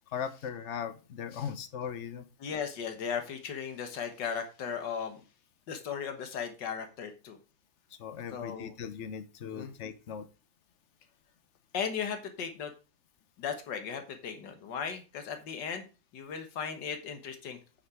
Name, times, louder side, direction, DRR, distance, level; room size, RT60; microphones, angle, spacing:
voice 1, 0.1-2.2 8.0-10.3, left 7 dB, 50° left, 12 dB, 1.0 m, -38 dB
voice 2, 2.4-5.2 5.7-7.4 8.3-8.7 9.5-9.7 11.7-12.7 13.4-17.6, left 7 dB, 85° left, 6 dB, 1.9 m, -36 dB
8.8 x 6.0 x 4.7 m, 0.32 s
omnidirectional pair, 1.9 m